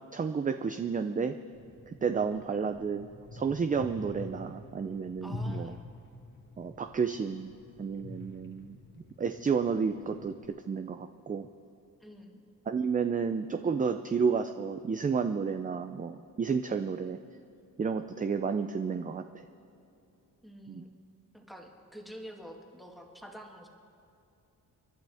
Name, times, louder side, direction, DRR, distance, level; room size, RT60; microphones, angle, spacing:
voice 1, 0.1-1.3 1.9-5.8 6.6-7.5 7.8-8.8 9.2-10.3 10.7-11.5 12.7-17.2 17.8-19.2 20.7-20.8, right 5 dB, 25° right, 8 dB, 0.4 m, -31 dB
sound 1, 1.5-10.4, left 2 dB, 30° left, 1.5 m, -46 dB
voice 2, 5.2-5.8 12.0-12.4 20.4-20.9 21.3-23.7, equal, ahead, 0 dB, 1.8 m, -48 dB
29.0 x 11.5 x 3.5 m, 2.8 s
wide cardioid pair, 120°, 36 cm